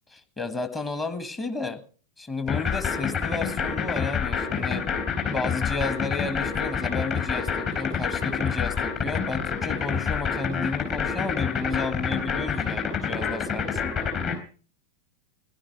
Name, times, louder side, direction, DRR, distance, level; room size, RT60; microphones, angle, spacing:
voice 1, 0.1-1.8 2.2-4.9 5.3-14.1, left 3 dB, 15° left, 10 dB, 1.6 m, -32 dB
sound 1, 2.5-14.3, left 6 dB, 35° left, 3.9 m, -27 dB
16.5 x 11.5 x 6.0 m, 0.40 s
figure-of-eight pair, 90°, 0 cm